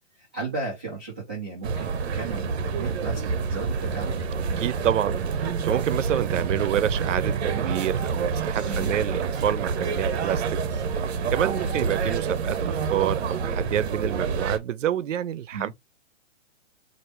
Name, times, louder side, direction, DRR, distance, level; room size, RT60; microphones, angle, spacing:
voice 1, 0.2-4.2 8.5-9.0 11.5-11.8 15.5-15.7, right 4 dB, 10° right, 0.3 m, -35 dB
sound 1, 1.6-14.6, right 5 dB, 60° right, 0.9 m, -27 dB
voice 2, 4.6-10.6 11.3-15.7, right 11 dB, 85° right, 0.6 m, -28 dB
sound 2, 6.0-12.2, right 4 dB, 45° right, 1.8 m, -41 dB
4.6 x 2.5 x 3.1 m
hypercardioid pair, 160°, 36 cm